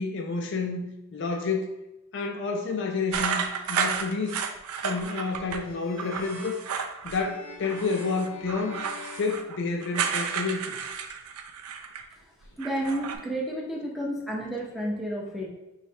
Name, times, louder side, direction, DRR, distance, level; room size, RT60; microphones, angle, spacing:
voice 1, 0.0-1.8 2.1-3.4 3.7-4.5 4.8-6.6 7.0-8.8 9.1-10.8, left 4 dB, 55° left, 3 dB, 0.4 m, -29 dB
sound 1, 3.1-5.6 6.0-7.3 7.6-12.1 12.4-13.2, right 6 dB, 80° right, 0.4 m, -32 dB
sound 2, 5.6-10.2, left 3 dB, 80° left, 1.0 m, -46 dB
voice 2, 12.6-15.5, right 1 dB, ahead, -3 dB, 0.6 m, -31 dB
5.4 x 3.2 x 2.8 m, 0.95 s
head